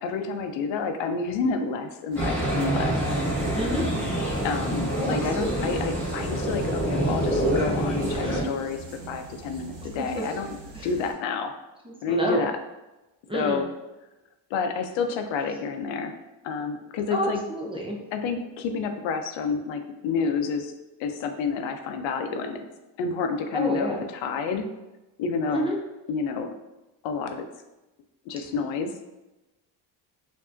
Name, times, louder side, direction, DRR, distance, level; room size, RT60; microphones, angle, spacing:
voice 1, 0.0-3.0 4.4-8.8 9.1-10.5 10.8-11.5 12.0-12.5 13.3-13.7 14.5-16.1 16.4-17.4 18.1-20.7 21.0-22.6 23.0-24.7 25.2-25.7 26.1-26.5 27.0-27.4 28.3-28.9, left 5 dB, 80° left, 6 dB, 0.6 m, -29 dB
sound 1, 2.1-11.1, right 3 dB, 85° right, 1.1 m, -44 dB
sound 2, 2.2-8.4, right 1 dB, 5° left, 1.0 m, -26 dB
voice 2, 3.5-3.8 5.0-5.7 8.1-8.5 10.0-10.2 10.7-10.9 11.8-12.5 13.3-13.6 17.1-18.0 23.5-24.0 25.5-25.8, right 1 dB, 10° right, -1 dB, 0.5 m, -29 dB
4.6 x 2.7 x 2.5 m, 1.0 s
cardioid pair, 120°, 45 cm